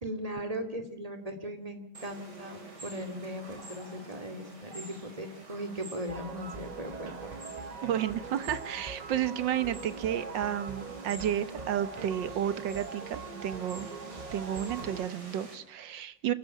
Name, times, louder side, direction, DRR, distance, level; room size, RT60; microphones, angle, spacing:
voice 1, 0.0-7.4, equal, 20° right, 7 dB, 2.5 m, -38 dB
sound 1, 1.9-15.6, right 2 dB, 65° right, 4.4 m, -48 dB
sound 2, 6.1-15.1, right 5 dB, 40° right, 0.6 m, -42 dB
voice 2, 7.8-13.9 14.3-16.3, right 10 dB, 85° right, 14 dB, 1.8 m, -32 dB
27.5 x 12.5 x 8.9 m, 0.82 s
omnidirectional pair, 1.9 m